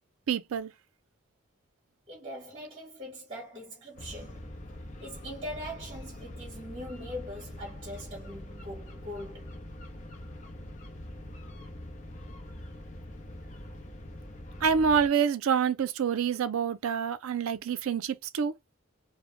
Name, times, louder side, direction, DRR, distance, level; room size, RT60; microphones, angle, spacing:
voice 1, 0.3-0.7 14.6-18.5, right 7 dB, 90° right, 0.4 m, -27 dB
voice 2, 2.1-4.4 5.0-9.5, equal, 25° right, 0.9 m, -41 dB
sound 1, 4.0-15.1, left 1 dB, 35° left, 0.5 m, -44 dB
2.1 x 2.0 x 3.0 m
head